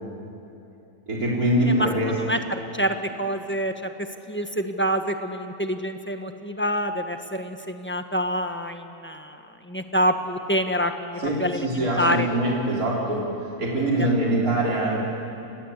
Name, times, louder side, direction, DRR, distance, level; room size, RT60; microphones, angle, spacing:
voice 1, 1.1-2.1 11.2-15.0, right 1 dB, 65° right, -4 dB, 4.9 m, -23 dB
voice 2, 1.7-3.9 4.3-12.3 14.0-14.1, equal, 10° left, 6 dB, 1.2 m, -27 dB
29.0 x 20.0 x 8.3 m, 2.8 s
omnidirectional pair, 1.7 m